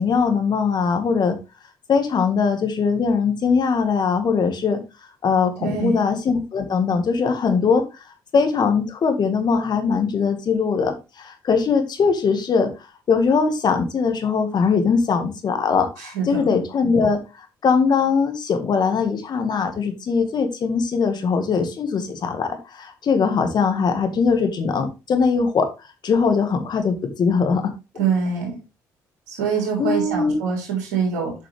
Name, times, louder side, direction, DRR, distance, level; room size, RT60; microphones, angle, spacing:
voice 1, 0.0-1.4 1.9-4.8 5.2-7.8 8.3-12.7 13.1-17.2 17.6-25.7 26.0-27.6 29.8-30.4, left 5 dB, 50° left, 7 dB, 1.7 m, -21 dB
voice 2, 5.6-6.0 16.0-16.5 28.0-28.6 29.3-31.3, right 6 dB, 85° right, -1 dB, 3.5 m, -24 dB
7.2 x 6.0 x 3.4 m, 0.27 s
hypercardioid pair, 50°, 9 cm